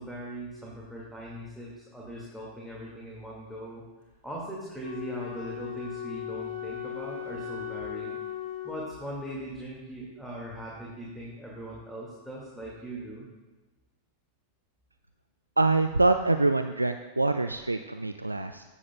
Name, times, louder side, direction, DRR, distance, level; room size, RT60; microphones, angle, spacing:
voice 1, 0.0-3.8 4.2-8.2 8.6-13.3, right 1 dB, ahead, -5 dB, 2.0 m, -40 dB
Wind instrument woodwind instrument, 4.8-9.2, left 9 dB, 55° left, 2.3 m, -37 dB
voice 2, 15.6-18.6, right 2 dB, 85° right, 8 dB, 0.3 m, -25 dB
16.0 x 8.3 x 2.3 m, 1.2 s
figure-of-eight pair, 90°, 0 cm